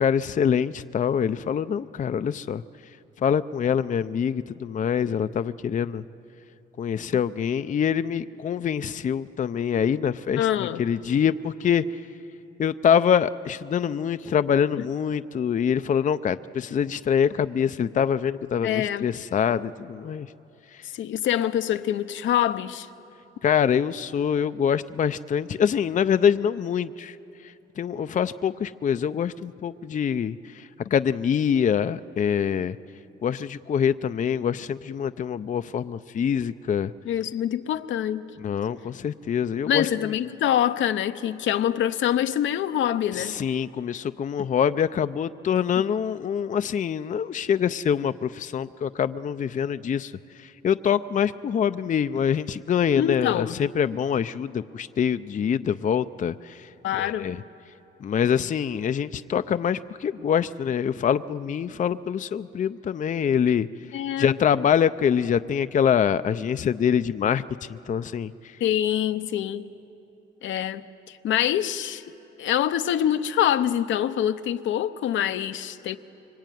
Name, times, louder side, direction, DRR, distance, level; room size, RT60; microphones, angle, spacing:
voice 1, 0.0-6.0 6.8-12.0 12.6-20.3 20.7-20.9 23.4-27.2 27.4-32.8 33.2-36.9 38.4-40.1 43.1-57.4 58.0-68.6, left 8 dB, 40° left, 0.5 m, -25 dB
voice 2, 10.4-10.8 18.6-19.1 20.9-22.9 37.1-38.3 39.7-43.4 45.8-45.9 52.9-53.6 56.8-57.3 63.9-64.4 68.6-69.7 70.4-70.9 71.2-72.0 72.4-76.0, left 11 dB, 75° left, 0.8 m, -25 dB
25.0 x 23.5 x 9.2 m
cardioid pair, 90°, 20 cm